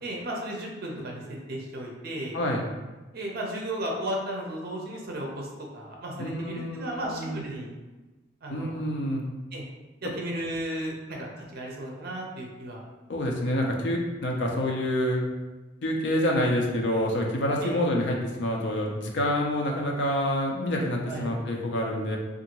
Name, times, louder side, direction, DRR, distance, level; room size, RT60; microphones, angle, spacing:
voice 1, 0.0-2.4 3.1-5.5 5.7-7.7 8.4-8.8 9.5-9.6 10.0-12.8 17.6-17.9 21.0-21.4, right 1 dB, 50° right, -1 dB, 0.6 m, -34 dB
voice 2, 2.3-2.6 6.2-7.4 8.5-9.2 13.1-15.2 15.8-22.2, left 1 dB, 60° left, 0 dB, 0.5 m, -27 dB
2.7 x 2.4 x 2.9 m, 1.2 s
head